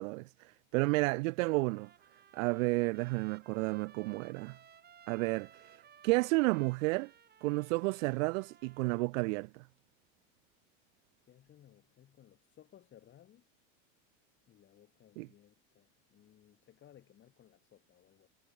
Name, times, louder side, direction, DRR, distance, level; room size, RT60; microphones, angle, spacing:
voice 1, 0.0-1.9 2.3-4.6 5.1-7.1 7.4-9.6 15.2-15.3, right 26 dB, 75° right, 0.7 m, -32 dB
Trumpet, 1.5-9.1, right 8 dB, 25° right, 6.6 m, -60 dB
voice 2, 11.3-13.6 14.5-18.3, left 11 dB, 30° left, 2.7 m, -61 dB
supercardioid pair, 155°, 39 cm